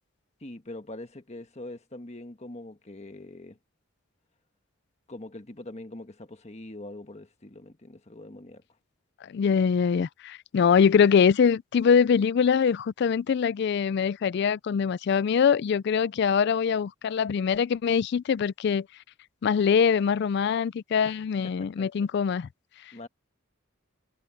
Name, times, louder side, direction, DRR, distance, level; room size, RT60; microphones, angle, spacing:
voice 1, 0.4-3.6 5.1-8.6 21.0-21.2 21.4-21.9 22.9-23.1, left 1 dB, 35° left, 1.4 m, -43 dB
voice 2, 9.2-18.9 19.4-22.5, left 6 dB, 55° left, 0.3 m, -23 dB
head